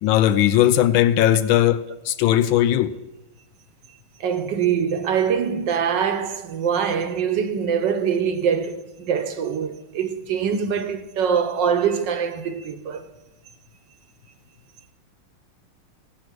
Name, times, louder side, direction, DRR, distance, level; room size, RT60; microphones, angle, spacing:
voice 1, 0.0-2.9, left 12 dB, 75° left, 1.3 m, -18 dB
voice 2, 4.2-13.0, right 7 dB, 65° right, 1.3 m, -23 dB
16.5 x 6.4 x 6.1 m
omnidirectional pair, 2.3 m